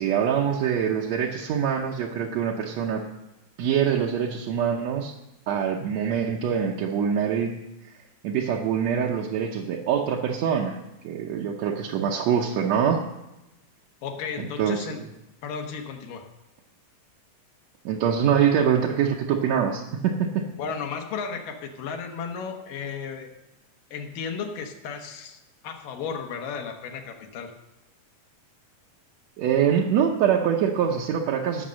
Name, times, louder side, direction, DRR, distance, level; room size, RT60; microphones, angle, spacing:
voice 1, 0.0-3.0 3.6-5.1 5.5-7.5 8.2-10.8 11.0-13.0 14.4-14.9 17.9-20.4 29.4-31.7, right 8 dB, 70° right, -1 dB, 1.8 m, -24 dB
voice 2, 14.0-15.0 15.4-16.3 20.6-23.3 23.9-25.4 25.6-27.5, left 6 dB, 75° left, 3 dB, 2.8 m, -34 dB
16.5 x 6.6 x 6.3 m, 0.94 s
omnidirectional pair, 4.0 m